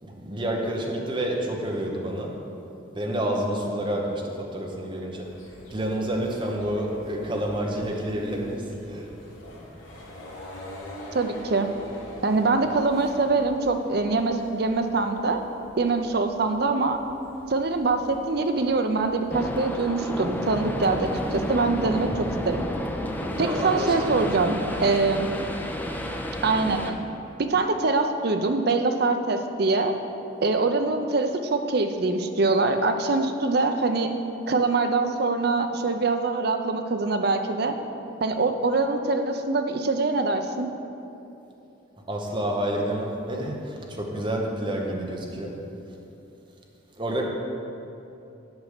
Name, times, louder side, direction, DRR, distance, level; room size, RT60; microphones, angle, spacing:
voice 1, 0.0-2.3 2.9-5.3 5.7-9.1 22.1-24.5 42.1-45.5 47.0-47.3, right 1 dB, 25° right, 0 dB, 0.9 m, -29 dB
sound 1, 5.2-22.6, left 1 dB, 75° left, 1.7 m, -46 dB
voice 2, 11.1-11.7 12.2-15.4 15.8-17.0 17.5-22.1 22.5-22.7 23.4-25.3 26.4-27.0 27.4-30.0 30.4-34.1 34.5-37.8 38.2-40.7, right 3 dB, 50° right, 6 dB, 0.5 m, -24 dB
sound 2, 19.3-26.9, equal, 10° left, 0.4 m, -31 dB
8.1 x 5.1 x 6.7 m, 2.9 s
head